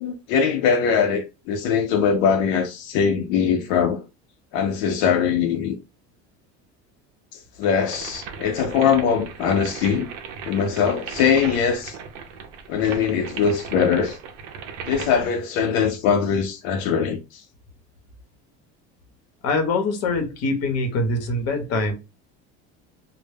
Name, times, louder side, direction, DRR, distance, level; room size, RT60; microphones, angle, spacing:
voice 1, 0.0-4.0 4.5-5.7 7.3-10.1 10.5-12.0 12.7-14.2 14.9-17.4, left 7 dB, 85° left, 0.5 m, -21 dB
sound 1, 7.6-15.3, right 6 dB, 60° right, 0.6 m, -37 dB
voice 2, 19.4-21.9, left 2 dB, 55° left, 0.8 m, -23 dB
2.1 x 2.0 x 3.2 m
cardioid pair, 145°, 31 cm